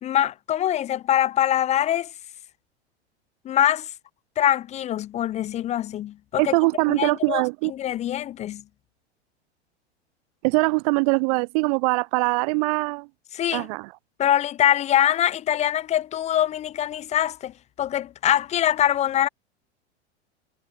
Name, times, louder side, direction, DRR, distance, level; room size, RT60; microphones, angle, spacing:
voice 1, 0.0-2.1 3.5-3.9 4.4-6.5 6.9-8.6 13.3-13.7 14.2-19.3, left 11 dB, 20° left, 0.5 m, -23 dB
voice 2, 6.4-7.7 10.4-13.1 13.5-13.9, right 31 dB, 35° right, 0.4 m, -22 dB
figure-of-eight pair, 90°, 35 cm